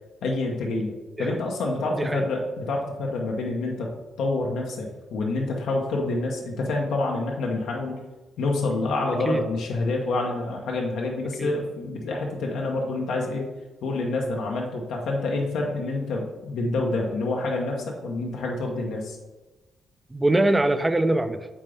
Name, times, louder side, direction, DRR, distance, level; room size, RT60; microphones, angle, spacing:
voice 1, 0.2-0.9 1.2-3.9 4.2-8.0 8.4-13.5 13.8-19.2, left 2 dB, 85° left, 0 dB, 0.9 m, -27 dB
voice 2, 20.1-21.5, right 1 dB, 15° right, 11 dB, 0.4 m, -23 dB
7.3 x 3.9 x 3.4 m, 1.2 s
cardioid pair, 105°, 0 cm